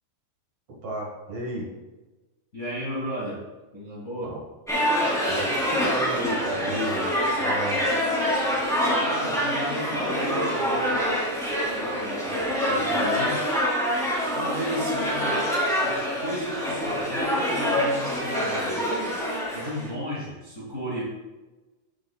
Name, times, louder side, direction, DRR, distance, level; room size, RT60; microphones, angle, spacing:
voice 1, 0.8-1.7 4.2-4.4 5.3-7.1 7.4-8.0, right 1 dB, 50° right, -1 dB, 2.2 m, -32 dB
voice 2, 2.5-3.4 3.7-4.3 9.0-11.1 11.7-13.4 14.3-15.5 15.8-18.9 19.5-21.0, equal, 20° left, -7 dB, 2.2 m, -34 dB
sound 1, 4.7-19.9, equal, ahead, 2.2 m, -26 dB
13.5 x 8.4 x 2.4 m, 1.2 s
omnidirectional pair, 4.2 m